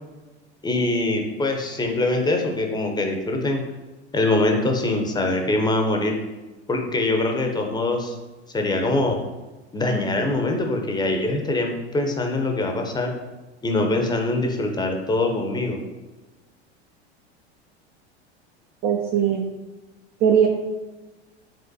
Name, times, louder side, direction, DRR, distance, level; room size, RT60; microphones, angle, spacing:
voice 1, 0.6-3.6 4.1-6.2 6.7-8.2 8.5-9.2 9.7-13.1 13.6-15.8, left 2 dB, 10° left, 3 dB, 0.6 m, -23 dB
voice 2, 18.8-19.4 20.2-20.5, right 8 dB, 30° right, 2 dB, 0.3 m, -19 dB
5.3 x 3.6 x 2.7 m, 1.2 s
hypercardioid pair, 85°, 34 cm